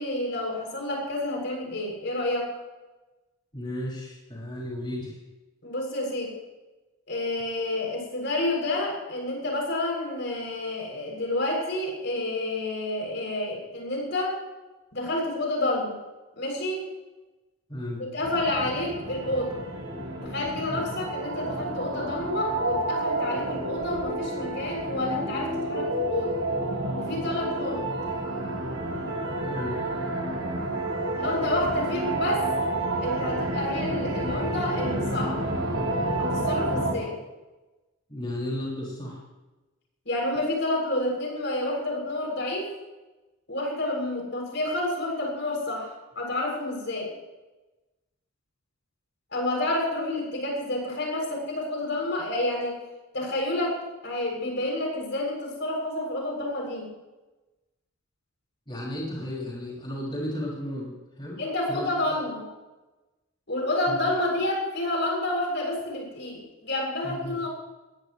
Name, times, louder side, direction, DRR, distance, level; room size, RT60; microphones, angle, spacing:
voice 1, 0.0-2.6 5.6-6.3 7.1-14.4 14.9-15.9 16.4-16.9 18.0-19.6 20.2-26.4 27.0-27.9 31.1-32.5 33.0-35.4 36.2-37.2 40.1-42.7 43.5-47.1 49.3-52.8 53.1-56.9 61.4-62.5 63.5-67.5, left 1 dB, 55° left, -1 dB, 7.2 m, -29 dB
voice 2, 3.5-5.2 17.7-18.0 20.7-20.8 29.4-29.7 38.1-39.2 58.7-61.4 61.7-61.9 63.9-64.0 67.0-67.4, left 1 dB, 25° left, -5 dB, 6.0 m, -34 dB
sound 1, 18.2-36.9, right 1 dB, 85° right, 7.5 m, -29 dB
21.0 x 21.0 x 3.2 m, 1.1 s
head